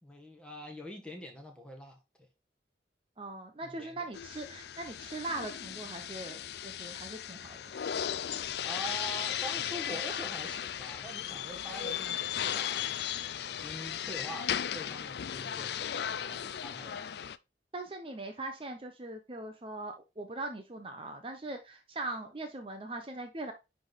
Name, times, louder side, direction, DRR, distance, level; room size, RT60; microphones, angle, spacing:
voice 1, 0.0-2.0 3.6-4.0 7.8-8.2 8.6-13.0 13.4-17.1, equal, 5° left, 1.6 m, -45 dB
voice 2, 3.2-8.0 17.7-23.5, right 2 dB, 30° right, 0.8 m, -41 dB
sound 1, 4.1-17.4, left 9 dB, 65° left, 0.4 m, -36 dB
10.0 x 3.6 x 4.0 m
head